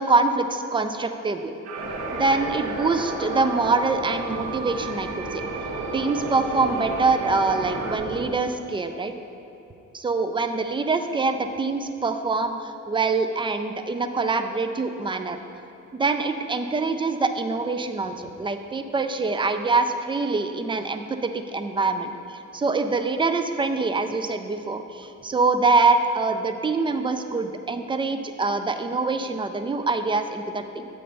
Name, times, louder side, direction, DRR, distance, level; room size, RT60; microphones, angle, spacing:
voice 1, 0.0-1.5 2.1-5.4 5.9-9.1 9.9-15.4 15.9-30.9, right 3 dB, 15° right, 8 dB, 0.3 m, -24 dB
sound 1, 1.6-8.0, right 5 dB, 60° right, 0.7 m, -36 dB
sound 2, 1.7-8.3, right 1 dB, 85° right, 1.3 m, -33 dB
7.7 x 3.3 x 5.4 m, 2.8 s
cardioid pair, 90°, 30 cm